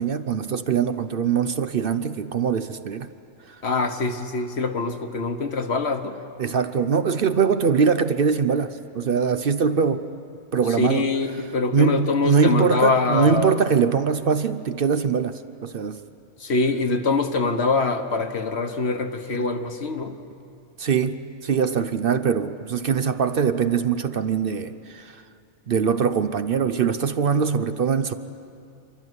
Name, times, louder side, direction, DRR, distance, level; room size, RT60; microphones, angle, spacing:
voice 1, 0.0-3.1 3.5-3.6 6.4-10.1 10.5-11.1 11.7-16.0 19.3-19.4 20.8-25.2 25.7-28.1, right 6 dB, 55° right, 11 dB, 0.6 m, -22 dB
voice 2, 3.6-6.2 10.8-13.6 16.4-20.2, left 3 dB, 50° left, 7 dB, 1.3 m, -24 dB
29.0 x 13.0 x 9.6 m, 2.5 s
omnidirectional pair, 1.5 m